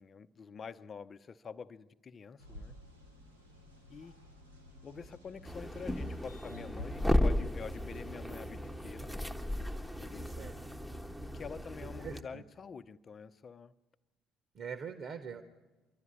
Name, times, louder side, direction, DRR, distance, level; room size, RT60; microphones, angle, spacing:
voice 1, 0.0-2.8 3.9-4.1 4.8-9.3 10.0-10.6 11.3-13.7, left 6 dB, 35° left, 12 dB, 0.9 m, -47 dB
sound 1, 2.4-10.4, left 1 dB, 90° right, 2.9 m, -53 dB
sound 2, 5.4-12.2, left 1 dB, ahead, 1.3 m, -35 dB
voice 2, 10.2-10.6 11.8-12.4 14.5-15.4, right 6 dB, 50° right, 10 dB, 1.5 m, -43 dB
27.0 x 12.0 x 9.8 m, 1.2 s
figure-of-eight pair, 50°, 0 cm